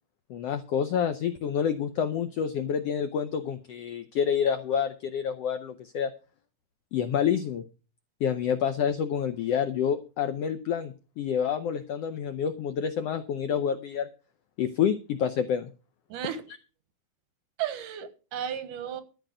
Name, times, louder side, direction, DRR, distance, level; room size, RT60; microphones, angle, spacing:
voice 1, 0.3-6.1 6.9-7.6 8.2-14.1 14.6-15.7, left 8 dB, 80° left, 1.4 m, -28 dB
voice 2, 16.1-16.4 17.6-19.0, right 9 dB, 80° right, 2.8 m, -34 dB
13.0 x 5.0 x 8.9 m
omnidirectional pair, 3.8 m